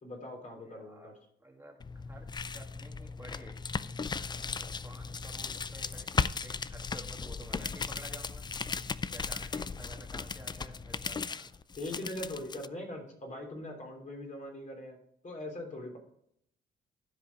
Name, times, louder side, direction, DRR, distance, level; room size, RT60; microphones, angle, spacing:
voice 1, 0.0-1.1 9.7-9.8 11.7-15.0 15.2-16.0, left 1 dB, 40° left, 1 dB, 3.2 m, -41 dB
voice 2, 0.5-1.1 1.4-2.3 2.5-3.6 4.6-8.5 9.1-11.5, right 2 dB, 10° right, 0 dB, 1.9 m, -52 dB
sound 1, 1.8-12.7, left 5 dB, 20° left, 0.4 m, -37 dB
12.5 x 5.1 x 4.7 m, 0.70 s
cardioid pair, 90°, 20 cm